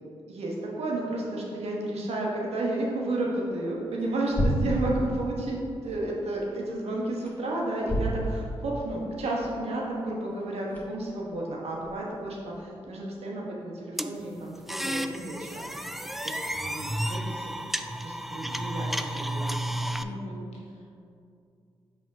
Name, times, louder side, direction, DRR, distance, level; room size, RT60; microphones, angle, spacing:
voice 1, 0.0-15.9 16.2-17.7 18.0-19.6, right 2 dB, 70° right, -3 dB, 1.2 m, -32 dB
sound 1, 1.7-18.9, equal, 15° left, 1.5 m, -37 dB
voice 2, 4.6-5.0 20.0-20.9, left 2 dB, 80° left, -2 dB, 1.1 m, -41 dB
sound 2, 14.0-20.0, right 1 dB, ahead, 0.3 m, -32 dB
5.5 x 3.5 x 4.8 m, 2.5 s
supercardioid pair, 45°, 11 cm